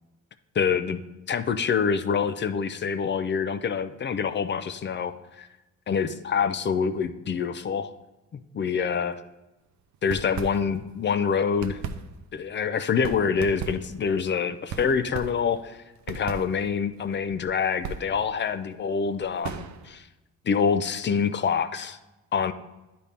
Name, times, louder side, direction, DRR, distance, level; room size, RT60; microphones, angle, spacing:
voice 1, 0.5-1.0 1.3-5.5 5.9-7.9 8.3-9.1 10.0-11.8 12.3-20.0 20.5-22.0 22.3-22.5, left 6 dB, 40° left, 11 dB, 0.5 m, -26 dB
sound 1, 9.9-11.0 11.3-20.0, right 6 dB, 70° right, 0.6 m, -38 dB
9.9 x 4.2 x 3.5 m, 1.0 s
cardioid pair, 90°, 30 cm